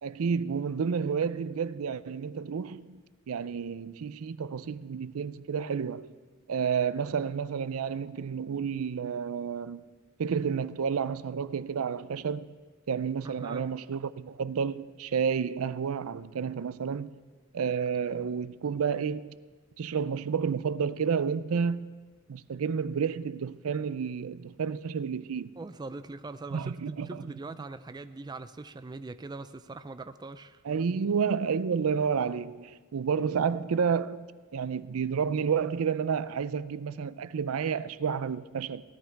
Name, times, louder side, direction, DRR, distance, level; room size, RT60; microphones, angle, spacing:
voice 1, 0.0-3.0 3.3-6.1 6.5-9.8 10.2-12.6 12.9-17.1 17.5-19.4 19.8-21.9 22.3-25.5 26.5-27.2 30.6-34.3 34.5-38.8, right 6 dB, 85° right, 0.5 m, -30 dB
voice 2, 13.2-13.7 25.6-30.6, right 3 dB, 20° right, 0.4 m, -42 dB
17.0 x 12.5 x 4.6 m
head